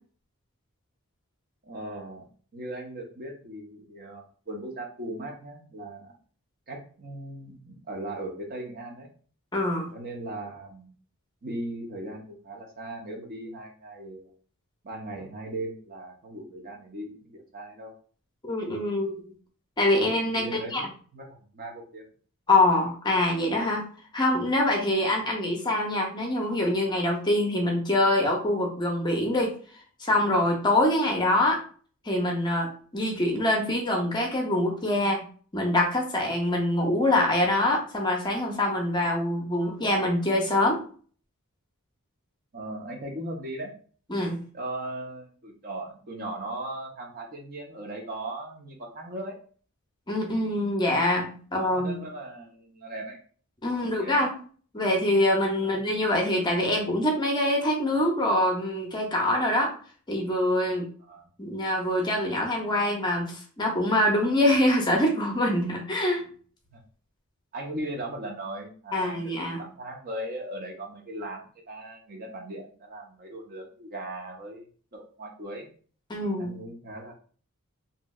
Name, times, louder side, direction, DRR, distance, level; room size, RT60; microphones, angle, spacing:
voice 1, 1.6-2.3 2.5-6.1 6.7-9.1 9.9-10.9 11.4-14.3 14.8-17.9 20.2-20.8 21.1-22.1 42.5-43.7 44.5-49.4 51.6-53.2 53.8-54.2 55.6-55.7 61.1-61.3 66.7-66.8 67.5-71.4 71.7-74.7 74.9-75.7 76.4-77.1, right 1 dB, 40° right, 1 dB, 0.7 m, -38 dB
voice 2, 9.5-9.9 18.4-19.3 19.8-20.4 20.7-20.8 22.5-23.9 24.1-29.5 30.0-31.6 32.1-35.2 35.5-40.8 44.1-44.4 50.1-52.0 53.6-54.3 54.7-59.7 60.1-60.9 61.4-66.2 68.9-69.6 76.1-76.6, left 1 dB, 20° left, 0 dB, 0.6 m, -24 dB
3.0 x 2.7 x 2.3 m, 0.43 s
head